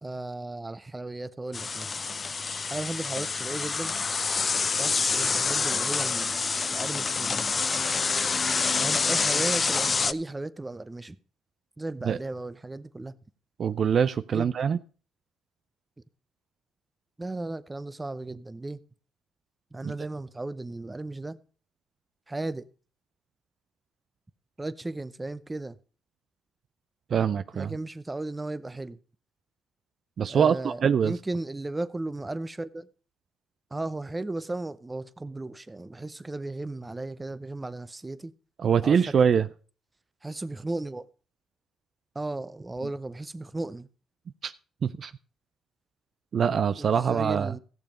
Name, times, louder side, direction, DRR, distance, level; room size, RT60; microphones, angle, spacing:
voice 1, 0.0-1.9 2.7-4.0 4.8-6.4 6.7-7.5 8.8-11.2 11.8-13.2 14.3-14.5 17.2-18.8 19.7-21.4 22.3-22.7 24.6-25.8 27.2-29.0 30.3-32.9 33.7-38.3 38.8-39.3 40.2-41.1 42.1-43.9 46.8-47.6, right 2 dB, 15° right, 0.7 m, -35 dB
sound 1, 1.5-10.1, left 4 dB, 35° left, 0.5 m, -27 dB
voice 2, 13.6-14.8 19.8-19.9 27.1-27.7 30.2-31.1 38.6-39.5 44.4-44.5 44.8-45.1 46.3-47.5, right 7 dB, 55° right, 0.5 m, -24 dB
15.0 x 6.9 x 5.2 m
cardioid pair, 80°, 0 cm